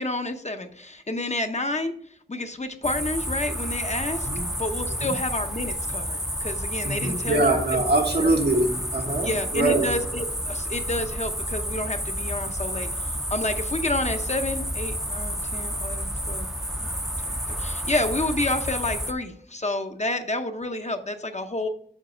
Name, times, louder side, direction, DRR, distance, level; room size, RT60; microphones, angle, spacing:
voice 1, 0.0-1.9 2.3-7.6 7.9-8.3 9.2-12.9 13.3-16.5 16.8-17.0 17.6-21.7, left 2 dB, 40° left, 6 dB, 0.8 m, -29 dB
sound 1, 2.8-19.1, equal, ahead, 0.6 m, -30 dB
voice 2, 6.8-9.9, right 2 dB, 80° right, 2 dB, 1.4 m, -23 dB
7.3 x 4.1 x 6.1 m, 0.62 s
wide cardioid pair, 50°, 17 cm